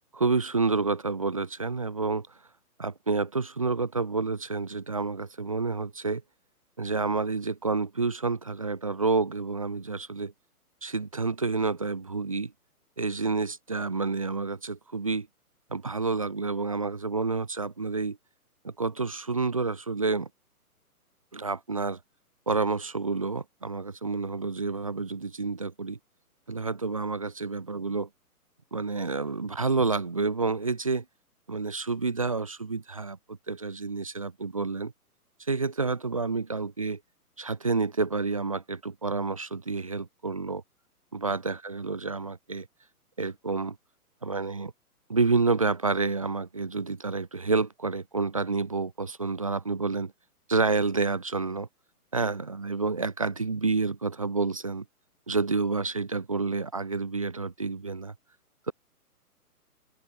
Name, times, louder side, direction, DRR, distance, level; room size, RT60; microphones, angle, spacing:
voice 1, 0.1-2.3 2.8-6.2 6.8-10.3 10.8-12.5 13.0-15.3 15.7-18.2 18.6-20.3 21.3-22.0 22.5-26.0 26.5-28.1 28.7-31.0 31.5-34.9 35.5-37.0 37.4-40.6 41.1-42.7 43.2-43.8 44.2-44.7 45.1-50.1 50.5-51.7 52.1-54.8 55.3-58.1, right 3 dB, 25° right, 0.6 m, -29 dB
hypercardioid pair, 175°, 46 cm